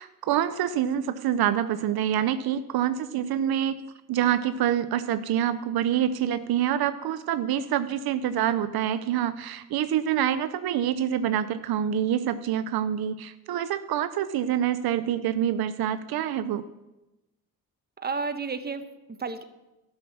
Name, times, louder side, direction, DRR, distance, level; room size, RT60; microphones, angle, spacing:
voice 1, 0.0-3.8 4.1-16.6, right 10 dB, 75° right, 12 dB, 0.7 m, -26 dB
voice 2, 18.0-19.4, right 4 dB, 25° right, 9 dB, 1.0 m, -32 dB
12.0 x 6.4 x 7.1 m, 0.98 s
cardioid pair, 80°, 38 cm